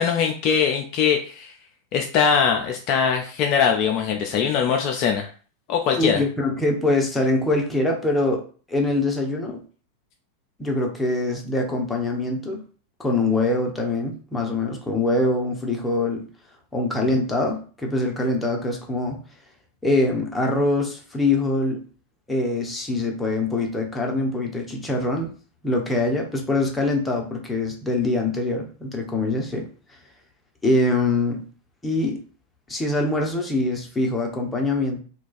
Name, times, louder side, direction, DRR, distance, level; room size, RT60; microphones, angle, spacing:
voice 1, 0.0-1.5 1.9-5.3 5.7-6.2, left 7 dB, 40° left, 3 dB, 0.4 m, -21 dB
voice 2, 6.0-8.4 8.7-9.6 10.6-12.6 13.0-16.2 16.7-19.2 19.8-21.8 22.3-25.3 25.6-29.7 30.6-31.4 31.8-32.2 32.7-35.0, left 2 dB, 10° left, 1 dB, 0.7 m, -23 dB
2.4 x 2.2 x 4.0 m, 0.40 s
figure-of-eight pair, 90°, 0 cm